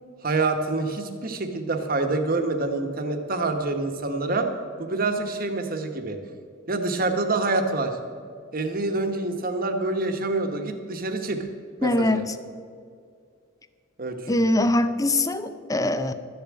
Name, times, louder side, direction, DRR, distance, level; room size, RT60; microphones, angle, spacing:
voice 1, 0.2-4.5 4.8-6.2 6.7-8.0 8.5-11.5 11.8-12.2 14.0-14.6, right 3 dB, 45° right, 5 dB, 1.2 m, -26 dB
voice 2, 11.8-12.2 14.3-16.1, left 1 dB, 15° left, 11 dB, 0.5 m, -22 dB
12.5 x 7.1 x 8.6 m, 2.2 s
head